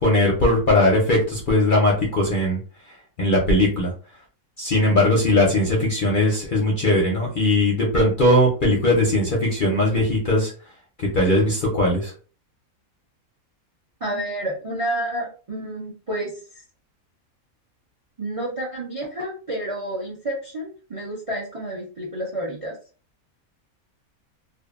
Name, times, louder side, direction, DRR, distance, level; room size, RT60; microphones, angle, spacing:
voice 1, 0.0-2.6 3.2-3.9 4.6-10.5 11.0-12.1, left 1 dB, 55° left, -2 dB, 0.6 m, -19 dB
voice 2, 14.0-16.3 18.2-22.8, right 1 dB, 40° right, -3 dB, 0.4 m, -29 dB
2.6 x 2.4 x 2.4 m, 0.37 s
omnidirectional pair, 1.5 m